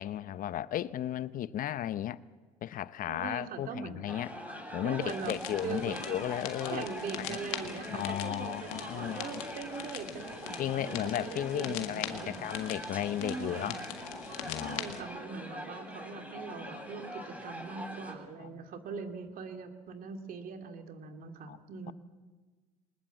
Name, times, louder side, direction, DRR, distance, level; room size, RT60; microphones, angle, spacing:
voice 1, 0.0-2.2 2.6-4.3 4.7-6.9 7.2-7.4 7.9-9.2 10.6-13.8 14.4-14.9 18.4-18.7 21.5-21.6, left 11 dB, 50° left, 0.8 m, -35 dB
voice 2, 3.1-4.1 4.8-5.4 5.6-6.3 6.7-12.3 13.2-13.8 14.6-21.9, right 5 dB, 55° right, 2.7 m, -41 dB
sound 1, 4.1-18.1, equal, 10° right, 7.7 m, -43 dB
sound 2, 5.0-15.0, left 12 dB, 80° left, 1.7 m, -43 dB
23.5 x 20.0 x 7.4 m
hypercardioid pair, 70°, 17 cm